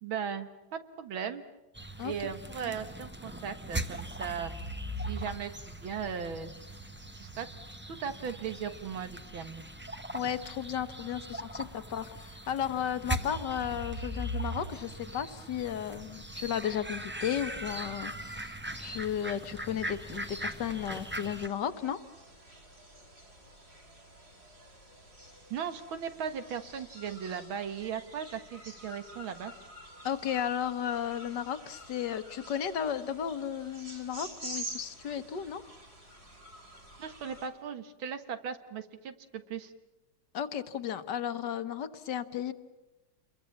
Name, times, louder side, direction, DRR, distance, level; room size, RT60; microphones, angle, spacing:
voice 1, 0.0-1.4 2.0-4.5 5.1-6.5 7.2-7.5 7.9-9.6 25.5-29.5 37.0-39.7, right 7 dB, 85° right, 9 dB, 2.2 m, -37 dB
sound 1, 1.7-21.5, right 1 dB, 10° right, 0.7 m, -40 dB
voice 2, 10.1-22.0 30.0-35.6 40.3-42.5, left 9 dB, 65° left, 12 dB, 1.6 m, -34 dB
sound 2, 18.6-37.5, right 1 dB, 50° right, 5.8 m, -49 dB
29.0 x 22.5 x 7.2 m, 1.1 s
omnidirectional pair, 2.1 m